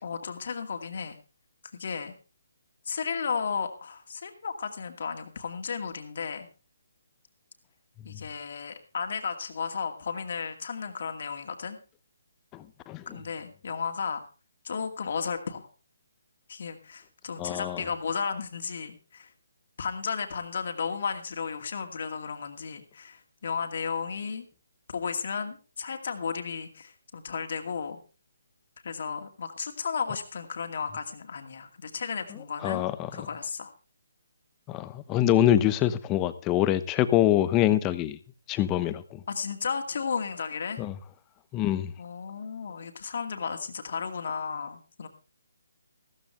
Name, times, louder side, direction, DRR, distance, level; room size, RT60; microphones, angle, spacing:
voice 1, 0.0-1.2 1.7-2.1 2.8-6.5 8.0-11.8 13.1-14.2 14.6-15.7 16.5-19.3 19.8-24.4 24.9-28.0 28.8-33.7 39.3-40.8 42.0-45.1, left 6 dB, 55° left, 5 dB, 2.3 m, -34 dB
voice 2, 12.5-13.0 17.4-17.8 32.6-33.1 34.7-38.2 38.5-39.2 40.8-40.9 41.5-41.9, left 12 dB, 20° left, 13 dB, 0.9 m, -25 dB
15.0 x 14.0 x 3.4 m, 0.34 s
hypercardioid pair, 155°, 0 cm